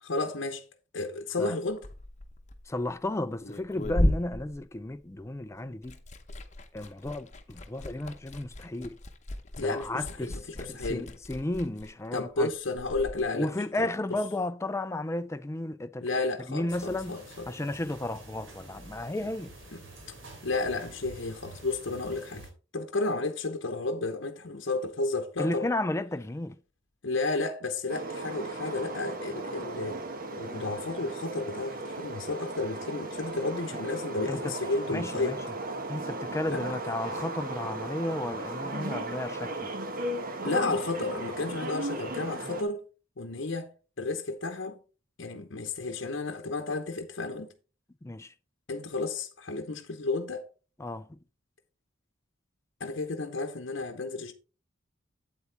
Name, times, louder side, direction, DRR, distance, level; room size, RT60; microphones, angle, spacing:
voice 1, 0.0-0.6 0.9-1.9 9.6-11.1 12.1-13.5 13.8-13.9 16.0-17.5 19.7-19.8 20.1-20.2 20.4-22.5 22.7-25.7 27.0-30.0 30.3-35.4 36.5-36.8 40.4-42.8 43.2-44.8 45.2-47.5 48.7-50.5 52.8-54.3, left 3 dB, 65° left, 0.8 m, -32 dB
Liquid, 1.7-5.4 5.7-13.2, left 1 dB, 35° left, 0.9 m, -35 dB
voice 2, 2.7-6.0 6.7-9.0 9.6-12.5 13.3-16.1 16.5-17.2 17.5-19.5 25.4-26.6 33.7-33.8 34.3-34.5 34.9-35.4 35.9-39.7 48.0-48.3 50.8-51.2, left 1 dB, 15° left, 0.4 m, -33 dB
sound 1, 16.7-22.5, right 2 dB, 70° right, 3.2 m, -48 dB
sound 2, 27.9-42.6, right 2 dB, 45° right, 1.2 m, -36 dB
8.4 x 8.2 x 3.3 m
head